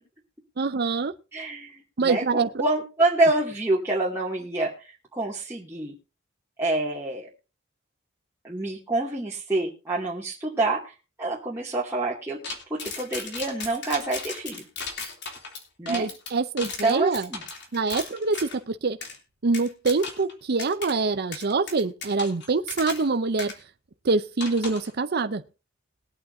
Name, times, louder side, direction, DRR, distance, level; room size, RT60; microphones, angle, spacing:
voice 1, 0.6-1.1 2.0-2.5 15.9-17.3 17.7-19.0 19.4-23.5 24.0-25.4, right 4 dB, 55° right, 0.7 m, -25 dB
voice 2, 1.3-4.7 5.1-5.9 6.6-7.3 8.4-10.9 11.2-14.7 15.8-16.1 16.8-17.4, right 2 dB, 15° right, 2.5 m, -27 dB
sound 1, 12.4-18.6 19.0-19.2 19.5-20.3 20.6-20.9 21.3-23.1 23.4-23.5 24.4-24.9, left 4 dB, 60° left, 3.1 m, -36 dB
21.5 x 8.8 x 2.7 m
head